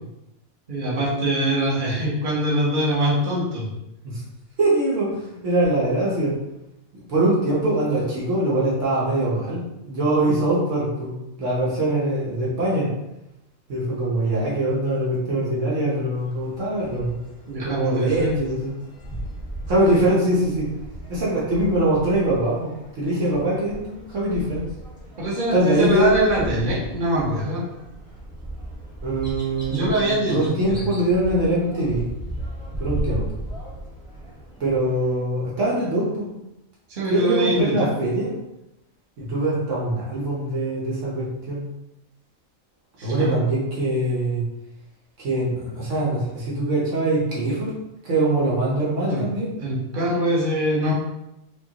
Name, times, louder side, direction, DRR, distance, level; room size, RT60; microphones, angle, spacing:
voice 1, 0.7-3.7 17.5-18.3 25.2-27.6 29.7-30.9 36.9-37.9 43.0-43.3 49.1-49.2 49.6-50.9, right 1 dB, 40° right, -6 dB, 1.1 m, -23 dB
voice 2, 4.6-5.1 5.4-6.3 7.1-11.1 11.4-12.9 13.7-17.2 17.6-18.7 19.7-20.7 21.1-22.7 23.0-23.8 24.1-24.6 25.5-26.1 29.0-32.0 32.8-33.2 34.6-36.3 37.1-38.3 39.2-41.6 43.0-44.4 45.2-47.7 48.0-49.5, right 1 dB, 65° right, -6 dB, 1.3 m, -22 dB
sound 1, 16.1-35.2, right 1 dB, 5° right, 1.0 m, -36 dB
4.9 x 2.4 x 2.9 m, 0.90 s
omnidirectional pair, 1.4 m